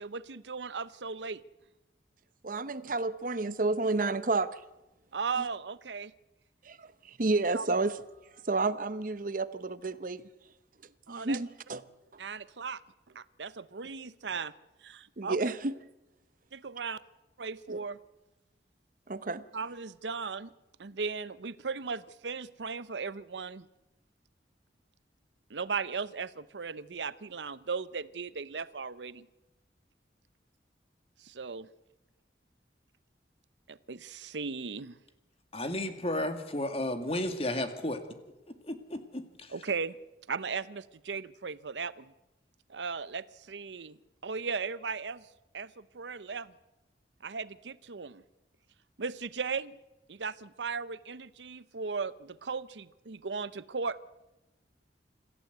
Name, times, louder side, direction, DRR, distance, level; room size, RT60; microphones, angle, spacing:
voice 1, 0.0-1.4 5.1-6.1 7.5-7.7 11.1-11.4 12.2-12.8 13.1-14.5 14.8-15.4 16.5-17.0 17.4-18.0 19.5-20.5 20.8-23.7 25.5-29.3 31.2-31.7 33.7-35.0 39.5-40.0 40.3-42.1 42.7-44.0 44.2-45.3 45.5-46.5 47.2-48.2 49.0-49.8 50.1-54.0, right 5 dB, 90° right, 16 dB, 0.8 m, -37 dB
voice 2, 2.4-4.6 6.7-8.0 8.5-10.2 11.1-11.8 15.2-15.7 17.7-17.8 19.1-19.4, right 3 dB, 50° right, 14 dB, 0.8 m, -30 dB
voice 3, 35.5-38.0 38.6-39.5, left 1 dB, 35° left, 8 dB, 2.1 m, -33 dB
26.5 x 14.5 x 8.1 m, 1.0 s
head